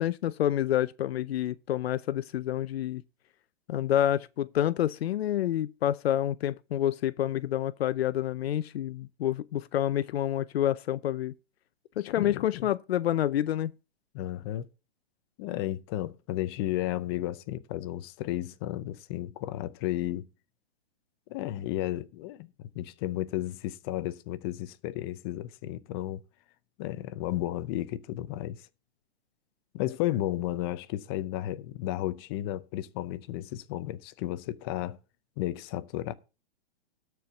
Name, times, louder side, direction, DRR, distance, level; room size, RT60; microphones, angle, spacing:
voice 1, 0.0-3.0 3.7-11.3 12.0-13.7, left 12 dB, 75° left, 0.6 m, -28 dB
voice 2, 12.2-12.7 14.1-14.7 15.4-20.3 21.3-26.2 26.8-28.7 29.7-35.0 35.4-36.1, left 14 dB, 25° left, 0.5 m, -33 dB
13.0 x 4.7 x 6.6 m
hypercardioid pair, 155°, 31 cm